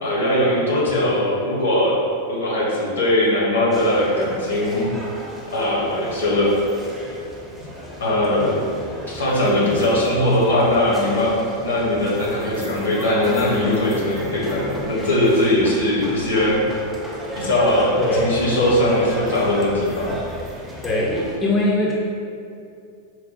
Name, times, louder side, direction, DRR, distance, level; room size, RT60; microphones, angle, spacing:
voice 1, 0.0-4.8 5.5-6.6 7.8-8.6 8.9-16.6 17.4-20.2, left 1 dB, 70° left, -5 dB, 1.2 m, -20 dB
sound 1, 3.7-21.4, right 1 dB, 5° right, 0.8 m, -35 dB
voice 2, 18.0-18.4 20.8-21.9, left 1 dB, 25° left, -4 dB, 0.7 m, -21 dB
4.5 x 2.2 x 4.4 m, 2.5 s
figure-of-eight pair, 90°, 0 cm